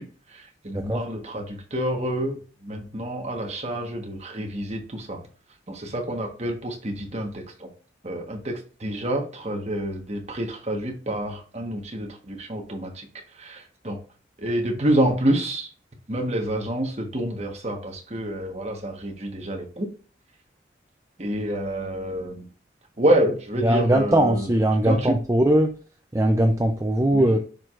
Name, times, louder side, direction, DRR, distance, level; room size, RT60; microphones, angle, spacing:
voice 1, 0.0-5.2 5.7-7.7 8.0-13.1 13.3-14.0 14.4-15.7 16.1-19.9 21.2-22.5 23.0-24.5 24.8-25.1 27.1-27.3, right 1 dB, 35° right, 2 dB, 1.3 m, -28 dB
voice 2, 23.6-25.7 26.1-27.4, right 1 dB, 15° right, 4 dB, 0.5 m, -20 dB
10.0 x 4.7 x 2.5 m, 0.39 s
head